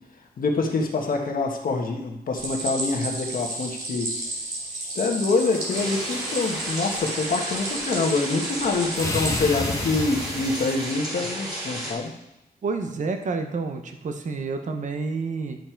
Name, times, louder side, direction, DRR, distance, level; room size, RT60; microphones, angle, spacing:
voice 1, 0.4-4.1 4.9-12.1, left 3 dB, 60° left, 2 dB, 1.4 m, -25 dB
Stream, 2.4-9.4, right 2 dB, 80° right, 3.1 m, -33 dB
sound 1, 5.3-7.1 8.9-10.9, left 3 dB, 20° left, 0.9 m, -33 dB
sound 2, 5.7-11.9, right 1 dB, 25° right, 2.5 m, -33 dB
voice 2, 12.6-15.6, right 4 dB, 50° right, 6 dB, 0.8 m, -29 dB
11.0 x 6.7 x 4.5 m, 0.90 s
wide cardioid pair, 175°, 16 cm